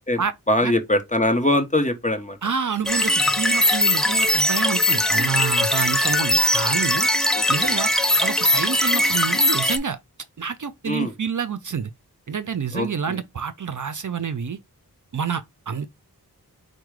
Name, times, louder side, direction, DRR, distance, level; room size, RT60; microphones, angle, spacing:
voice 1, 0.1-2.4 7.3-7.7 10.9-11.1 12.7-13.2, left 1 dB, 20° left, 0.9 m, -23 dB
voice 2, 2.4-7.1 7.5-7.9 8.2-10.0 10.4-11.9 12.3-14.6 15.1-15.9, right 7 dB, 55° right, 0.5 m, -28 dB
sound 1, 2.9-9.8, left 1 dB, ahead, 0.6 m, -20 dB
4.6 x 2.2 x 4.6 m
wide cardioid pair, 45°, 38 cm